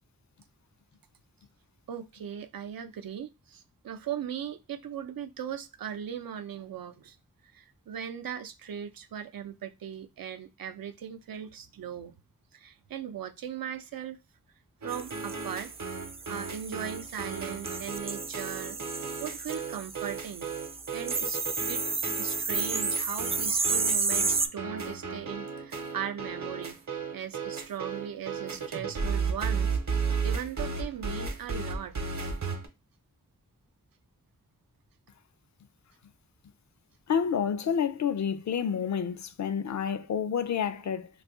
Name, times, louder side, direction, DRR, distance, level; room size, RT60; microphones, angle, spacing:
voice 1, 1.9-7.2 7.5-12.1 12.5-14.2 14.8-15.7 16.3-18.8 19.2-20.5 20.9-21.4 21.7-26.8 27.1-29.7 30.2-31.9, right 9 dB, 85° right, 0.5 m, -38 dB
sound 1, 14.8-32.7, right 5 dB, 55° right, 0.8 m, -34 dB
sound 2, 14.9-24.5, right 4 dB, 20° right, 0.3 m, -32 dB
voice 2, 37.1-41.1, left 7 dB, 55° left, 0.5 m, -29 dB
2.5 x 2.4 x 3.6 m
cardioid pair, 45°, 34 cm